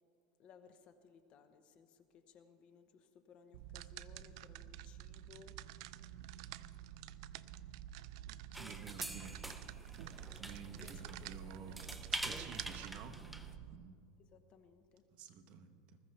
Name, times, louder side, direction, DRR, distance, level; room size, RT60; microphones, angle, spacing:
voice 1, 0.4-5.6 8.6-8.9 9.2-9.4 10.8-11.5 14.3-15.0, left 6 dB, 35° left, 9 dB, 0.8 m, -62 dB
sound 1, 3.5-13.8, right 11 dB, 65° right, 0.4 m, -49 dB
sound 2, 8.5-13.6, right 1 dB, 5° right, 0.5 m, -45 dB
voice 2, 8.5-9.3 10.4-11.8 12.1-13.2 13.7-14.0 15.1-16.0, right 6 dB, 45° right, 7 dB, 1.0 m, -51 dB
20.5 x 14.0 x 3.3 m, 2.3 s
supercardioid pair, 155°, 3 cm